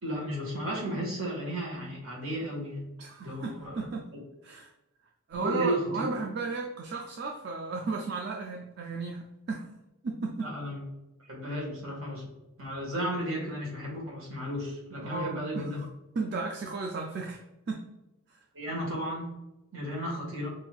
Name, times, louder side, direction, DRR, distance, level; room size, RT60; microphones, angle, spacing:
voice 1, 0.0-2.9 3.2-3.8 5.3-5.9 10.4-10.8 11.3-12.3 12.6-15.8 18.5-19.3 19.7-20.5, equal, 65° right, -2 dB, 1.5 m, -34 dB
voice 2, 3.0-4.1 4.4-4.7 5.3-9.7 10.0-10.6 15.0-15.7 16.2-17.9 18.3-18.4, right 4 dB, 45° right, 1 dB, 0.3 m, -34 dB
5.4 x 2.6 x 2.3 m, 0.96 s
head